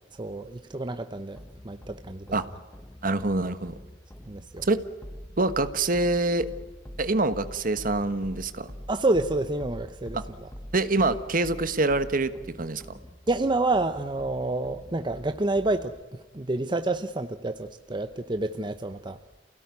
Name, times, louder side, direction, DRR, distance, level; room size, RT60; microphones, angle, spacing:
voice 1, 0.1-1.4 1.6-2.3 4.3-4.7 8.9-10.5 13.3-19.2, right 2 dB, 25° right, 9 dB, 0.7 m, -28 dB
sound 1, 1.4-16.0, equal, 15° left, 1.1 m, -45 dB
voice 2, 3.0-3.7 4.6-4.8 5.4-6.5 7.0-8.7 10.7-12.3 12.6-12.8, right 2 dB, 50° right, 12 dB, 1.4 m, -25 dB
28.5 x 17.5 x 9.5 m, 1.3 s
head